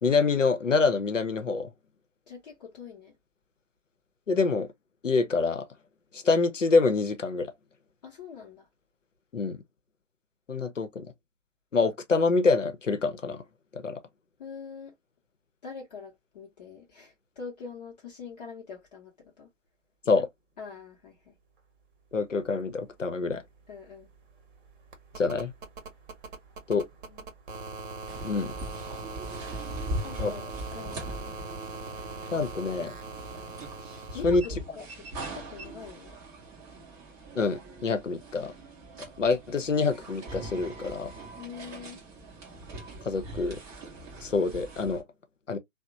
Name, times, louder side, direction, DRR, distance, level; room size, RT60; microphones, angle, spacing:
voice 1, 0.0-1.7 4.3-4.7 5.0-5.7 6.1-7.5 9.3-9.6 10.5-11.1 11.7-13.4 13.8-14.0 20.1-20.3 22.1-23.4 25.2-25.5 26.7-26.9 28.2-28.5 30.2-30.3 32.3-32.9 34.2-34.4 37.4-38.5 39.2-41.1 43.1-43.6 44.2-45.0 45.5-45.6, left 4 dB, 85° left, 0.7 m, -26 dB
voice 2, 2.3-3.2 8.0-8.7 14.4-14.9 15.6-19.5 20.6-21.3 23.7-24.1 27.1-27.2 30.0-30.5 30.7-31.4 34.1-36.2 41.4-42.0, left 6 dB, 35° left, 0.7 m, -44 dB
sound 1, 23.0-23.1 23.3-34.2 35.7-35.8, right 3 dB, 45° right, 0.9 m, -41 dB
sound 2, 28.1-45.0, right 1 dB, 10° right, 0.6 m, -41 dB
2.8 x 2.0 x 2.5 m
figure-of-eight pair, 125°, 37 cm